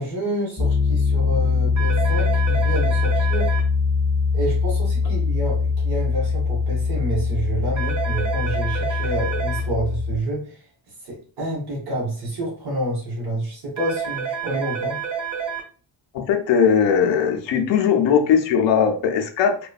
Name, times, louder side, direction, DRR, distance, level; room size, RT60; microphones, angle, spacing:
voice 1, 0.0-3.5 4.3-10.6 11.0-15.0, right 1 dB, 60° right, -4 dB, 1.2 m, -28 dB
Piano, 0.6-10.2, left 5 dB, ahead, 0.4 m, -22 dB
sound 1, 1.8-3.6 7.8-9.6 13.8-15.6, right 7 dB, 45° right, 0.7 m, -29 dB
voice 2, 16.1-19.6, left 7 dB, 80° left, 5 dB, 0.6 m, -19 dB
2.9 x 2.2 x 2.3 m, 0.41 s
wide cardioid pair, 160°, 43 cm